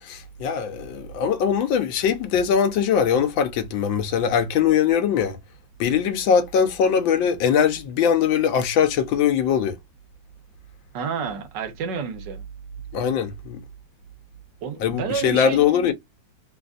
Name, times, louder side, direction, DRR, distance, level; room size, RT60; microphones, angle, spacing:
voice 1, 0.0-5.4 5.8-9.8 12.9-13.6 14.8-15.9, left 7 dB, 85° left, 1.6 m, -21 dB
voice 2, 10.9-12.4 14.6-15.6, right 6 dB, 70° right, 1.4 m, -29 dB
3.8 x 2.5 x 2.4 m
omnidirectional pair, 2.0 m